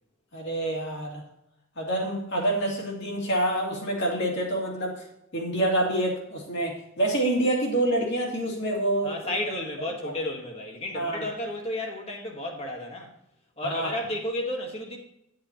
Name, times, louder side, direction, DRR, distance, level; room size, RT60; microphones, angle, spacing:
voice 1, 0.3-1.2 1.8-5.0 5.3-9.1 10.9-11.3 13.6-13.9, right 1 dB, 60° left, -2 dB, 2.4 m, -27 dB
voice 2, 9.0-13.1 13.6-15.0, left 1 dB, 30° left, 1 dB, 1.5 m, -32 dB
10.5 x 7.8 x 2.9 m, 0.80 s
head